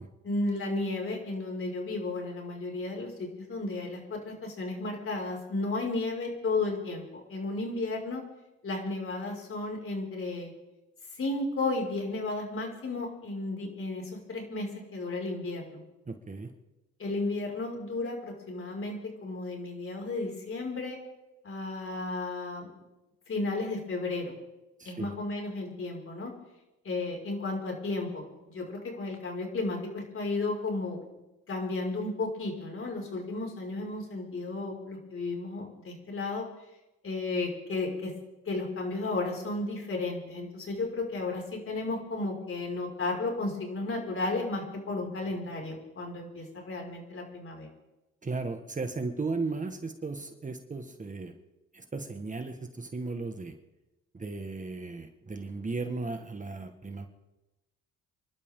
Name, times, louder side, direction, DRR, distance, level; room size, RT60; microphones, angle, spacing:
voice 1, 0.2-8.2 8.6-10.5 11.2-15.8 17.0-21.0 21.4-22.7 23.3-24.3 24.8-26.3 26.8-31.0 31.5-36.5 37.0-38.1 38.5-47.7, left 2 dB, 45° left, 0 dB, 5.9 m, -33 dB
voice 2, 16.1-16.5 24.8-25.1 48.2-51.3 51.7-53.6 54.1-57.1, right 3 dB, 25° right, 6 dB, 1.6 m, -36 dB
29.0 x 12.0 x 3.8 m, 0.99 s
cardioid pair, 90°, 30 cm